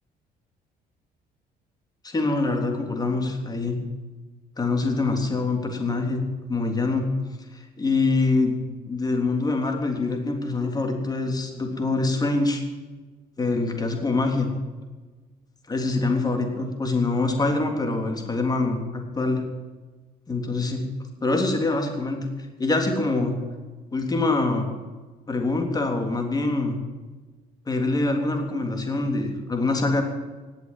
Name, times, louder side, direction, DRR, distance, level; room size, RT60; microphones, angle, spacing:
voice 1, 2.0-3.8 4.6-7.1 7.8-12.6 13.4-14.5 15.7-19.4 20.3-20.8 21.2-22.3 22.6-23.3 23.9-24.7 25.3-26.8 27.7-30.0, left 3 dB, 25° left, 3 dB, 3.4 m, -24 dB
19.0 x 8.0 x 9.1 m, 1.3 s
cardioid pair, 110°, 17 cm